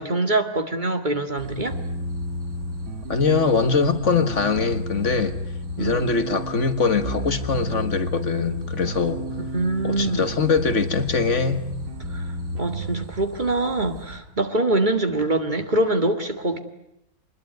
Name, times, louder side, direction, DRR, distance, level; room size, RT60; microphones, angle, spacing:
voice 1, 0.0-1.8 5.8-6.1 9.5-10.3 12.1-12.3 12.6-16.6, right 2 dB, 30° right, 6 dB, 2.2 m, -24 dB
sound 1, 1.4-14.2, right 1 dB, 85° right, 4.6 m, -41 dB
sound 2, 1.7-13.0, equal, 70° right, 2.6 m, -32 dB
voice 2, 3.1-5.4 5.8-9.2 9.8-11.7, left 4 dB, 55° left, 9 dB, 1.8 m, -22 dB
25.5 x 21.0 x 9.4 m, 0.80 s
omnidirectional pair, 1.5 m